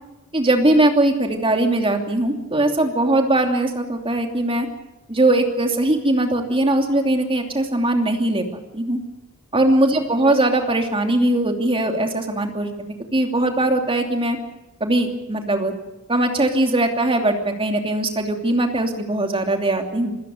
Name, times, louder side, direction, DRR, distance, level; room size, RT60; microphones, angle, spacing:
voice 1, 0.3-4.7 5.1-8.4 8.7-9.0 9.5-14.4 14.8-15.7 16.1-20.1, right 1 dB, 25° right, 4 dB, 2.9 m, -20 dB
27.0 x 16.0 x 8.0 m, 0.99 s
head